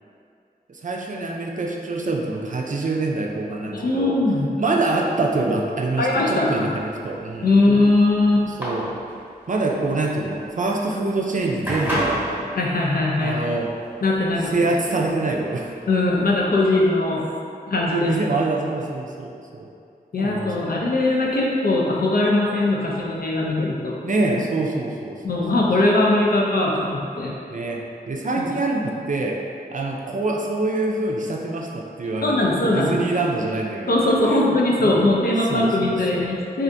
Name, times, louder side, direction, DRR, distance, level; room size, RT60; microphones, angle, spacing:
voice 1, 0.7-4.2 4.6-7.5 8.5-8.9 9.5-12.5 13.2-13.7 14.4-15.7 17.9-19.7 20.2-20.9 24.0-25.2 27.5-29.4 29.7-35.1 35.5-36.3, right 2 dB, 50° right, -1 dB, 0.4 m, -25 dB
voice 2, 3.7-4.5 6.0-6.6 7.4-8.5 12.6-13.4 14.0-14.5 15.9-17.2 17.7-18.1 20.1-24.0 25.2-27.3 28.4-28.5 32.2-33.1 33.9-36.6, left 2 dB, 65° left, -3 dB, 0.5 m, -20 dB
sound 1, 6.6-16.4, equal, 10° right, 1.0 m, -32 dB
3.3 x 2.5 x 2.6 m, 2.5 s
wide cardioid pair, 50°, 17 cm